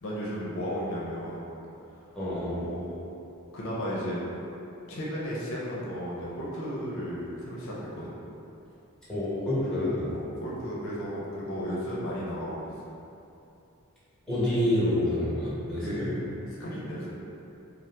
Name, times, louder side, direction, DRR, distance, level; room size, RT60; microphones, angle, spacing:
voice 1, 0.0-1.4 2.4-3.0 3.5-4.2 4.9-8.1 10.1-12.7 15.8-17.2, equal, 60° left, -6 dB, 0.6 m, -34 dB
voice 2, 2.1-2.5 9.1-10.2 14.3-16.1, left 1 dB, 5° left, -11 dB, 1.0 m, -27 dB
2.8 x 2.0 x 3.3 m, 2.8 s
head